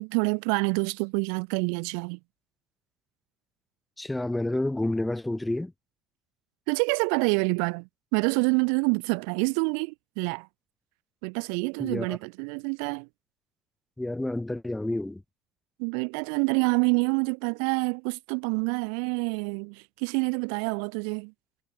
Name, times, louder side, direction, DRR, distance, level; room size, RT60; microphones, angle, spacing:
voice 1, 0.0-2.2 6.7-10.5 11.2-13.1 15.8-21.3, right 40 dB or more, 90° right, 0.7 m, -27 dB
voice 2, 4.0-5.7 11.8-12.2 14.0-15.2, left 1 dB, 5° left, 1.7 m, -29 dB
cardioid pair, 125°, 0 cm